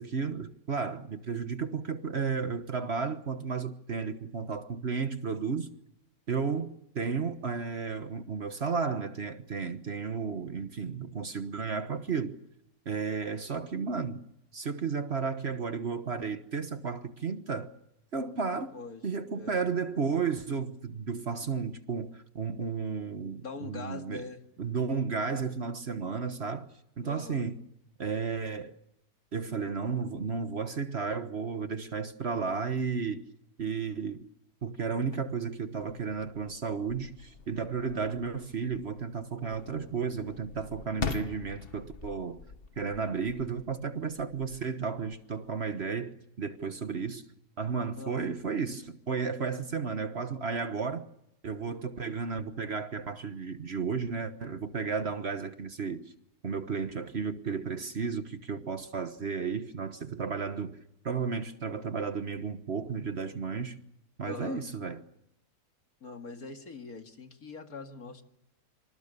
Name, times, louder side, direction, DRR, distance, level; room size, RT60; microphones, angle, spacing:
voice 1, 0.0-5.7 6.3-12.4 12.8-14.2 14.5-17.7 18.1-18.7 19.0-24.3 24.6-26.7 27.0-27.6 28.0-28.7 29.3-33.2 33.6-34.2 34.6-42.4 42.8-47.2 47.6-51.0 51.4-56.1 56.4-60.8 61.0-63.8 64.2-65.0, right 5 dB, 45° right, 1.4 m, -33 dB
voice 2, 23.4-24.4 27.0-27.4 48.0-48.2 64.2-64.7 66.0-68.2, left 4 dB, 65° left, 2.6 m, -42 dB
sound 1, 35.0-45.9, left 4 dB, 40° left, 1.4 m, -44 dB
26.0 x 26.0 x 6.8 m
omnidirectional pair, 1.7 m